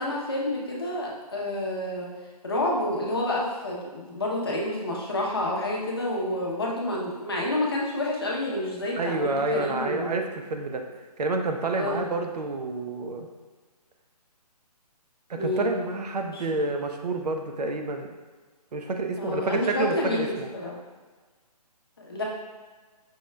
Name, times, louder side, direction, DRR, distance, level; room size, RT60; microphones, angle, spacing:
voice 1, 0.0-2.1 2.4-10.2 11.7-12.1 15.4-15.7 16.3-16.4 19.2-20.8 22.0-22.2, left 1 dB, 35° left, -3 dB, 0.6 m, -29 dB
voice 2, 9.0-10.8 11.2-13.3 15.3-18.1 18.7-20.5, right 2 dB, 75° right, 4 dB, 0.6 m, -29 dB
5.3 x 2.2 x 3.1 m, 1.4 s
hypercardioid pair, 180°, 21 cm